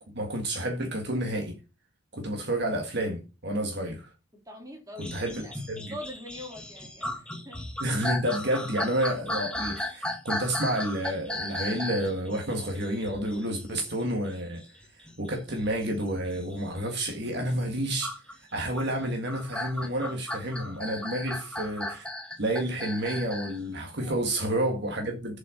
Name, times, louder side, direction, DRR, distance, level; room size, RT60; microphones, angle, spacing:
voice 1, 0.1-1.6 2.1-4.1 5.0-5.9 7.8-14.6 14.9-22.1 22.4-25.4, right 1 dB, 50° right, 1.7 m, -30 dB
voice 2, 4.5-5.5 5.8-7.6 24.0-24.3, left 1 dB, 15° right, 3.2 m, -43 dB
sound 1, 5.0-17.4 18.0-23.6 24.1-24.2, left 1 dB, 5° left, 1.1 m, -36 dB
7.6 x 5.6 x 6.5 m
head